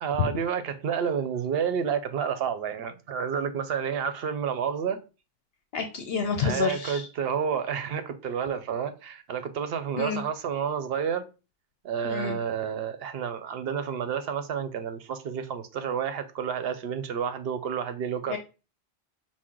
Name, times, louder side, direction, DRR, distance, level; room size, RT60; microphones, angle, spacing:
voice 1, 0.0-5.0 6.4-11.3 11.8-18.4, right 7 dB, 65° right, 0.8 m, -30 dB
voice 2, 5.7-7.1 10.0-10.2 12.0-12.4 18.3-18.4, left 5 dB, 65° left, 0.8 m, -29 dB
6.0 x 2.1 x 3.6 m
omnidirectional pair, 1.1 m